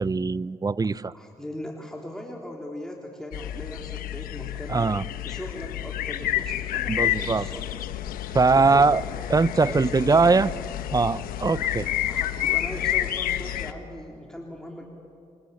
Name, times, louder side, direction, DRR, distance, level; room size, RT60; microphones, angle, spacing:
voice 1, 0.0-1.1 4.7-5.0 6.9-7.4 8.3-9.0 9.3-10.5 10.9-11.9, right 4 dB, 25° right, 18 dB, 0.7 m, -21 dB
voice 2, 1.1-4.9 5.2-7.7 8.5-9.0 9.6-10.4 12.1-14.9, left 1 dB, 5° left, -1 dB, 3.7 m, -39 dB
sound 1, 3.3-13.7, left 12 dB, 85° left, 1.1 m, -29 dB
27.0 x 23.5 x 8.5 m, 2.5 s
supercardioid pair, 65°, 15 cm